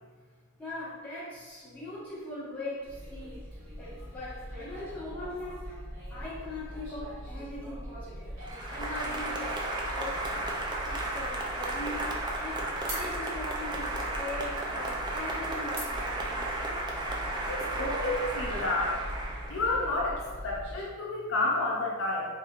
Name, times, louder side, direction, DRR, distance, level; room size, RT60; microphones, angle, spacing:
voice 1, 0.6-3.5 3.8-5.7 6.1-16.5, left 2 dB, 10° left, -11 dB, 1.3 m, -41 dB
sound 1, 2.8-20.9, equal, 70° right, 1.3 m, -42 dB
Applause, 8.4-19.9, right 2 dB, 20° right, 0.5 m, -34 dB
voice 2, 17.5-18.9 19.5-20.2 20.4-22.3, left 2 dB, 65° left, -3 dB, 0.6 m, -30 dB
4.3 x 3.2 x 2.4 m, 1.4 s
head